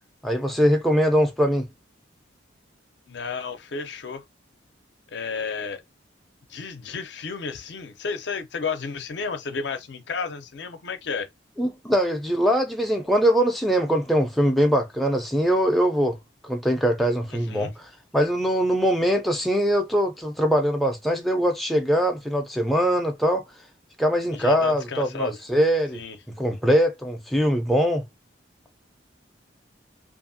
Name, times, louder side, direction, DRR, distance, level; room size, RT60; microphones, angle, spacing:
voice 1, 0.2-1.7 11.6-16.2 16.4-23.4 24.0-26.0 26.4-28.0, equal, ahead, 0.3 m, -22 dB
voice 2, 3.1-4.2 5.1-5.8 6.5-11.3 17.3-17.7 24.3-25.4 25.9-26.2, left 5 dB, 65° left, 0.5 m, -32 dB
2.7 x 2.5 x 2.6 m
head